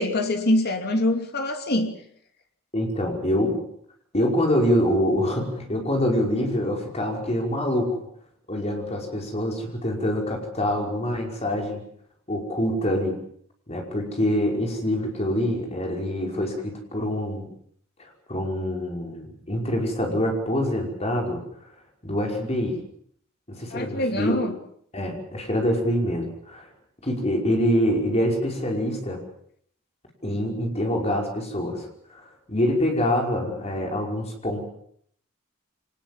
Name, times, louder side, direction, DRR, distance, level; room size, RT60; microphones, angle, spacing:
voice 1, 0.0-1.9 23.7-24.5, left 1 dB, 50° left, 6 dB, 2.8 m, -24 dB
voice 2, 2.7-3.6 4.1-8.0 8.5-11.8 12.3-13.2 13.7-17.5 18.3-21.4 22.0-22.8 23.5-24.4 24.9-26.7 27.0-29.2 30.2-34.7, equal, 30° left, 1 dB, 5.4 m, -25 dB
24.5 x 19.5 x 7.5 m, 0.66 s
head